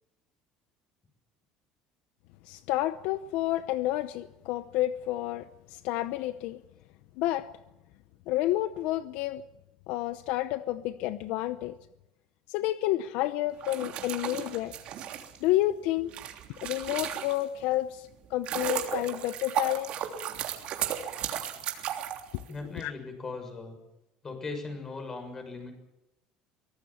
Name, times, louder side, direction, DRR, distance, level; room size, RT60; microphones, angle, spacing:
voice 1, 2.4-6.6 7.2-7.5 8.3-9.4 9.9-11.8 12.5-14.7 15.4-16.1 16.6-19.9 22.3-22.4 22.7-22.9, left 15 dB, 75° left, 0.8 m, -30 dB
sound 1, 13.5-17.6 18.1-22.8, right 10 dB, 55° right, 3.2 m, -35 dB
voice 2, 22.5-23.8 24.2-25.7, left 3 dB, 20° left, 6.7 m, -38 dB
24.0 x 18.5 x 7.2 m
cardioid pair, 140°, 2 cm